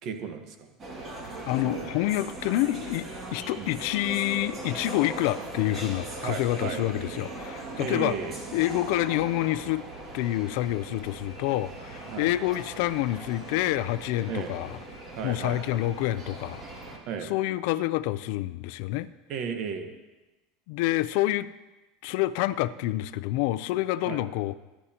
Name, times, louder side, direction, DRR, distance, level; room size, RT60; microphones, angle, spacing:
voice 1, 0.0-0.7 1.6-1.9 3.6-3.8 6.2-6.8 7.8-8.4 12.1-12.4 14.3-14.5 15.2-15.6 17.1-17.3 19.3-19.9 24.1-24.2, right 6 dB, 45° right, 6 dB, 1.3 m, -34 dB
sound 1, 0.8-17.0, right 2 dB, 25° right, 2.3 m, -40 dB
voice 2, 1.5-8.2 8.5-9.8 10.1-14.8 15.2-16.6 17.2-19.1 20.7-21.5 22.0-24.5, left 16 dB, 60° left, 14 dB, 0.5 m, -27 dB
22.5 x 11.0 x 2.9 m, 1.1 s
supercardioid pair, 160°, 0 cm